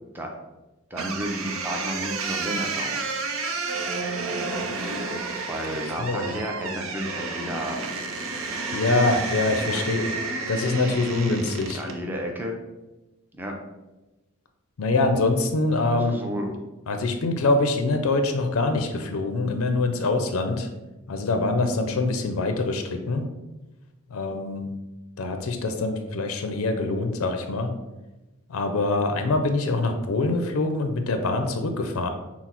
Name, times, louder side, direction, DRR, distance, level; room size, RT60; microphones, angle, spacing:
voice 1, 0.9-3.1 5.5-7.9 9.7-9.9 11.7-12.5 13.3-13.5 15.9-16.6, equal, 10° right, 1 dB, 0.5 m, -32 dB
sound 1, 0.9-12.0, right 3 dB, 70° right, 0.6 m, -31 dB
voice 2, 6.0-6.3 8.7-10.1 10.5-11.8 14.8-16.2 16.9-20.7 21.1-23.3 24.1-24.7 25.2-27.7 28.5-32.1, left 2 dB, 80° left, 6 dB, 0.5 m, -24 dB
5.9 x 2.0 x 4.3 m, 1.1 s
head